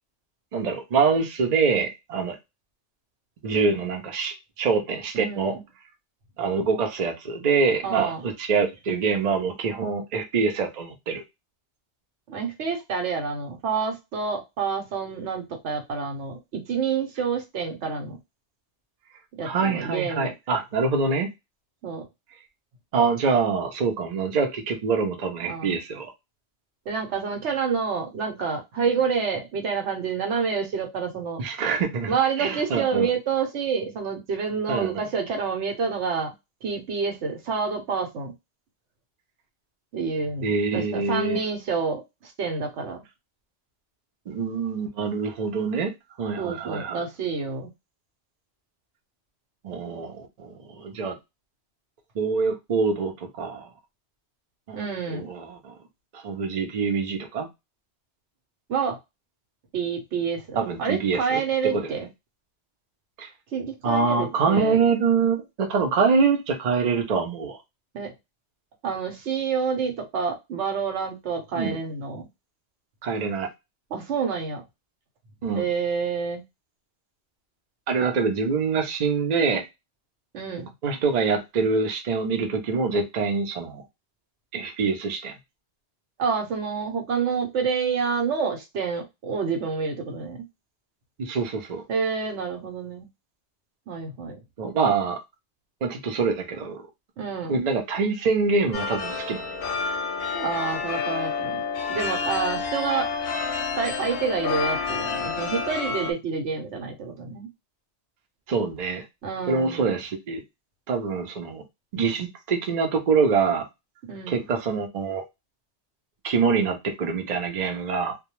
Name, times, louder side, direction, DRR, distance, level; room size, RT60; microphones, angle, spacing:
voice 1, 0.5-2.4 3.4-5.6 6.4-11.2 19.4-21.3 22.9-26.1 31.4-33.1 34.7-34.9 40.4-41.4 44.3-45.9 46.2-47.0 49.6-51.1 52.1-53.7 54.7-55.7 56.1-57.5 60.6-61.9 63.2-63.3 63.8-67.6 71.6-71.7 73.0-73.5 75.4-75.6 77.9-79.6 80.8-83.8 84.5-85.3 91.2-91.8 94.6-95.2 95.8-96.9 97.5-99.5 108.5-109.0 109.5-110.4 110.9-111.6 111.9-113.7 114.3-115.2 116.2-118.2, right 5 dB, 45° right, 0.6 m, -25 dB
voice 2, 5.1-5.6 7.8-8.2 12.3-18.2 19.3-20.3 21.8-22.1 25.5-25.8 26.9-31.4 32.1-36.3 36.6-38.3 39.9-43.0 46.4-47.7 54.7-55.3 58.7-59.0 59.7-62.0 63.5-64.8 67.9-68.1 68.8-72.3 73.9-74.6 75.5-76.4 80.3-80.7 86.2-90.5 91.9-93.0 93.9-94.4 97.2-97.5 100.3-101.6 101.9-103.1 103.8-107.5 109.2-109.9 114.1-114.4, right 5 dB, 85° right, 1.1 m, -28 dB
sound 1, 98.7-106.1, left 5 dB, 65° left, 0.7 m, -29 dB
2.3 x 2.1 x 2.9 m
omnidirectional pair, 1.2 m